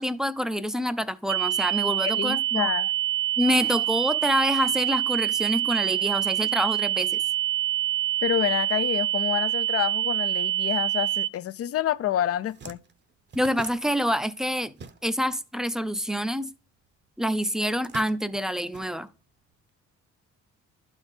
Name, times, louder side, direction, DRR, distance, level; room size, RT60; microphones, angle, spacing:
voice 1, 0.0-2.7 3.4-7.2 13.3-14.7 15.0-16.5 17.2-19.1, equal, ahead, 0.4 m, -27 dB
sound 1, 1.3-11.3, right 14 dB, 70° right, 0.7 m, -26 dB
voice 2, 2.0-2.9 8.2-12.8, left 12 dB, 50° left, 0.4 m, -28 dB
sound 2, 11.9-12.0 12.3-15.4 15.7-16.9 17.5-19.5, right 5 dB, 35° right, 0.7 m, -45 dB
11.5 x 4.2 x 3.4 m
cardioid pair, 90°, 30 cm